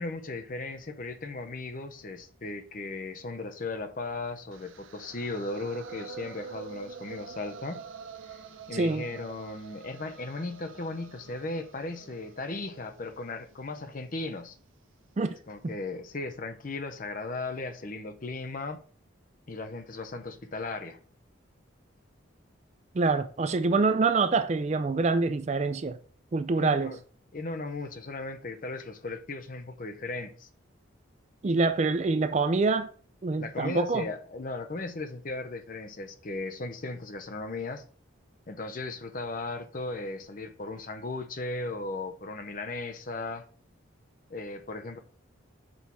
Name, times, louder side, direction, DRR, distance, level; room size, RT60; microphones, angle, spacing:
voice 1, 0.0-7.8 8.7-14.6 15.5-18.8 19.5-21.0 26.5-27.0 27.3-30.5 33.4-37.8 38.5-43.4 44.3-45.0, left 3 dB, 40° left, 0.6 m, -36 dB
sound 1, 4.5-14.6, right 6 dB, 70° right, 0.6 m, -47 dB
voice 2, 8.7-9.0 15.2-15.3 15.6-15.7 22.9-26.0 26.3-27.0 31.4-32.9 33.2-34.1, right 3 dB, 35° right, 0.4 m, -25 dB
6.2 x 3.5 x 4.4 m
head